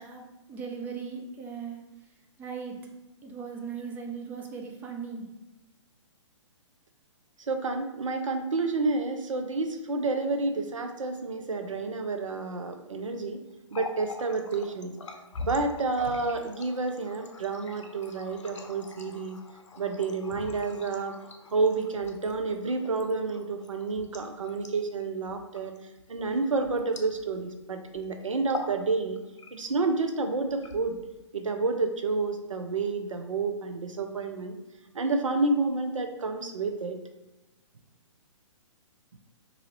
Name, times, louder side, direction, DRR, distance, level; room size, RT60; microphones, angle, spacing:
voice 1, 0.0-1.9 2.4-2.8 3.2-5.3, right 6 dB, 10° right, 1 dB, 0.4 m, -38 dB
voice 2, 7.5-13.4 13.7-14.9 15.4-19.4 19.8-21.2 21.5-25.7 26.1-29.2 29.5-31.0 31.3-34.5 34.9-37.0, right 3 dB, 85° right, 5 dB, 0.5 m, -29 dB
Water tap faucet, 13.5-27.6 27.8-28.1 28.4-28.8 29.2-29.8 30.5-31.2, left 3 dB, 70° left, 0.6 m, -43 dB
3.8 x 2.7 x 3.0 m, 1.0 s
figure-of-eight pair, 130°, 16 cm